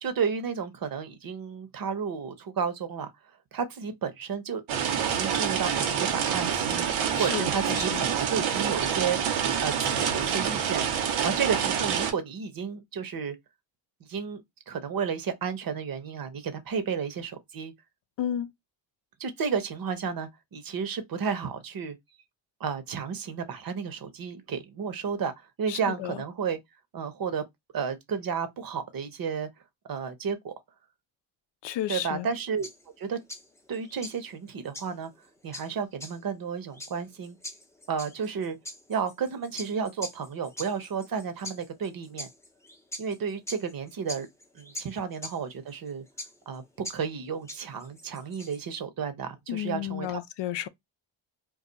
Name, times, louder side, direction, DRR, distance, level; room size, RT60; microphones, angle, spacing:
voice 1, 0.0-3.1 3.5-4.6 5.0-6.9 7.1-9.2 9.6-13.4 14.1-17.7 19.2-22.0 22.6-25.3 25.6-26.6 26.9-27.4 27.7-29.5 29.9-30.5 31.9-32.7 33.0-33.2 33.7-35.1 35.4-37.4 37.9-38.6 38.9-42.3 43.0-44.3 44.5-46.0 46.5-50.2, right 6 dB, 45° right, 0.8 m, -32 dB
sound 1, 4.7-12.1, right 8 dB, 90° right, 0.9 m, -27 dB
voice 2, 7.1-8.0 18.2-18.5 25.7-26.2 31.6-32.3 49.5-50.7, left 11 dB, 60° left, 0.5 m, -32 dB
sound 2, 32.3-48.8, left 1 dB, 5° left, 0.6 m, -43 dB
2.3 x 2.3 x 3.8 m
cardioid pair, 85°, 47 cm